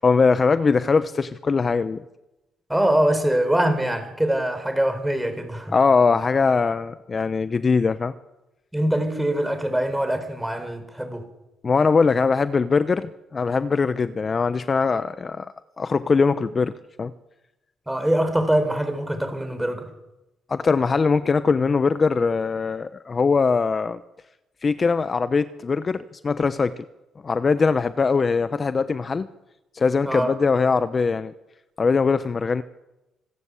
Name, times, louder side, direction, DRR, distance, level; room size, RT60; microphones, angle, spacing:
voice 1, 0.0-2.0 5.7-8.1 11.6-16.7 17.0-17.1 20.5-24.0 24.6-26.7 27.2-29.3 29.7-31.3 31.8-32.6, left 4 dB, 35° left, 12 dB, 0.8 m, -21 dB
voice 2, 2.7-5.7 8.7-11.2 17.9-19.9 30.0-30.3, right 1 dB, 5° right, 9 dB, 4.6 m, -23 dB
26.0 x 13.5 x 8.4 m, 0.98 s
cardioid pair, 90°, 0 cm